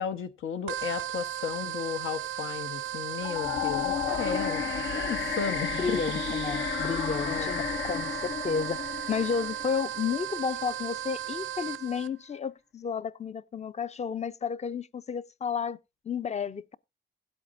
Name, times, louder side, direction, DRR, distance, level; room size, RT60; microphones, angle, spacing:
voice 1, 0.0-4.6 4.9-6.0 7.3-7.5, left 7 dB, 85° left, 1.2 m, -34 dB
sound 1, 0.7-12.1, right 11 dB, 80° right, 0.5 m, -36 dB
sound 2, 3.2-10.3, left 9 dB, 70° left, 0.8 m, -33 dB
voice 2, 5.7-15.8 16.0-16.8, left 6 dB, 35° left, 0.6 m, -32 dB
17.0 x 8.3 x 2.6 m
cardioid pair, 90°, 20 cm